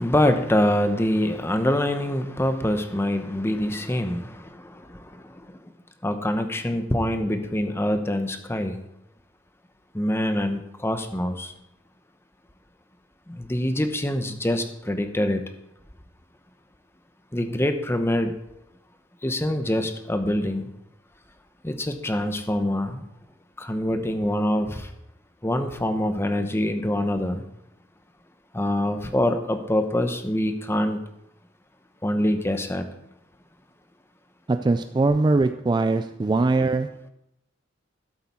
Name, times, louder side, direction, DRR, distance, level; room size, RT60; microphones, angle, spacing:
voice 1, 0.0-4.3 6.0-8.8 9.9-11.5 13.4-15.4 17.3-18.3 19.2-20.7 21.6-23.0 23.6-24.8 25.4-27.4 28.5-31.0 32.0-32.8, left 1 dB, 15° left, 8 dB, 0.8 m, -24 dB
voice 2, 34.5-37.0, right 3 dB, 20° right, 9 dB, 0.3 m, -22 dB
13.0 x 7.5 x 4.3 m, 0.83 s
head